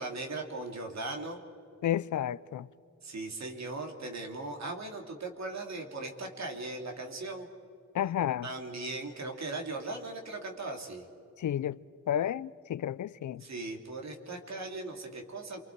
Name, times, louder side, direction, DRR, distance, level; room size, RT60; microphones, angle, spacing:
voice 1, 0.0-1.4 3.0-7.5 8.4-11.0 13.4-15.6, right 2 dB, 65° right, 2.7 m, -38 dB
voice 2, 1.8-2.7 7.9-8.5 11.4-11.8 12.1-13.4, left 10 dB, 80° left, 0.5 m, -31 dB
28.0 x 24.5 x 4.7 m
wide cardioid pair, 115°, 29 cm